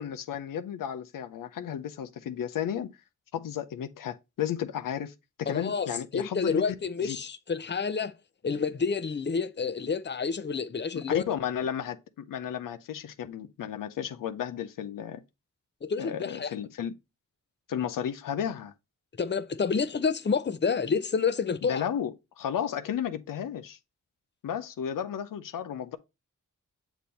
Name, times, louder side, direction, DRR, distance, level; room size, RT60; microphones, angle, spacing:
voice 1, 0.0-2.9 3.3-6.6 7.0-7.2 10.9-15.2 16.0-16.9 17.7-18.7 21.6-23.8 24.4-26.0, left 9 dB, 90° left, 0.5 m, -33 dB
voice 2, 5.5-8.1 8.4-11.2 15.8-16.5 19.2-21.9, left 5 dB, 35° left, 0.6 m, -29 dB
6.8 x 3.0 x 5.2 m
cardioid pair, 45°, 32 cm